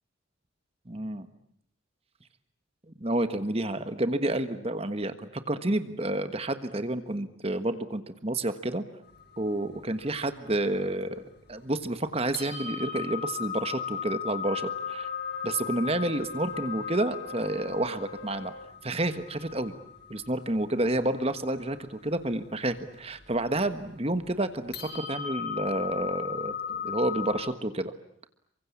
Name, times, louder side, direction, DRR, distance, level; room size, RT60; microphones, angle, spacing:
voice 1, 0.9-1.3 2.9-8.8 9.4-11.2 11.5-15.1 15.4-18.5 18.8-19.7 20.1-27.9, right 1 dB, 30° right, 10 dB, 1.4 m, -30 dB
sound 1, 9.0-11.4 11.9-12.0 12.3-27.3, left 7 dB, 50° left, 6.4 m, -37 dB
Wind instrument woodwind instrument, 14.4-18.8, left 2 dB, 80° left, 2.6 m, -45 dB
28.5 x 24.0 x 8.6 m, 0.70 s
head